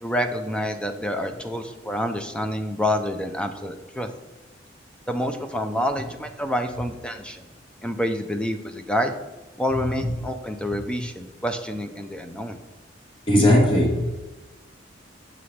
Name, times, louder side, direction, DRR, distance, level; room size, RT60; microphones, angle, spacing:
voice 1, 0.0-4.1 5.1-7.5 7.8-9.1 9.6-12.6, equal, 5° left, 7 dB, 0.4 m, -28 dB
voice 2, 13.3-14.1, left 1 dB, 30° left, -2 dB, 1.6 m, -17 dB
6.7 x 5.6 x 3.2 m, 1.1 s
head